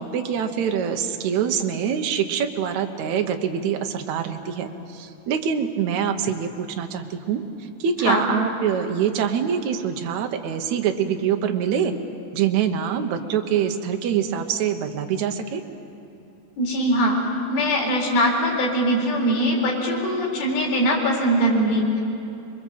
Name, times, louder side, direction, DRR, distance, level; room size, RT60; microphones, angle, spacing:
voice 1, 0.0-7.4 7.8-11.9 12.3-15.6, right 8 dB, 75° right, 5 dB, 1.7 m, -25 dB
voice 2, 16.6-17.2 17.5-22.0, equal, 60° left, -2 dB, 6.1 m, -21 dB
27.5 x 22.0 x 7.6 m, 2.8 s
omnidirectional pair, 5.0 m